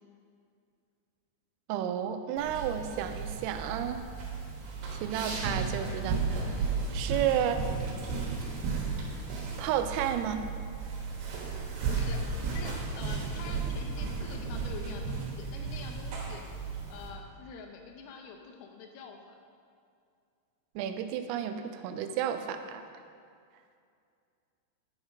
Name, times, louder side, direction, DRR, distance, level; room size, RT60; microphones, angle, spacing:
voice 1, 1.7-4.0 4.9-6.3 6.9-7.6 9.6-10.4 20.8-22.8, right 9 dB, 90° right, 8 dB, 3.2 m, -32 dB
sound 1, 2.4-17.1, right 4 dB, 70° right, 3.0 m, -34 dB
voice 2, 11.9-16.5 16.9-19.4, left 5 dB, 90° left, 3 dB, 3.5 m, -45 dB
10.0 x 6.3 x 4.9 m, 2.3 s
omnidirectional pair, 5.8 m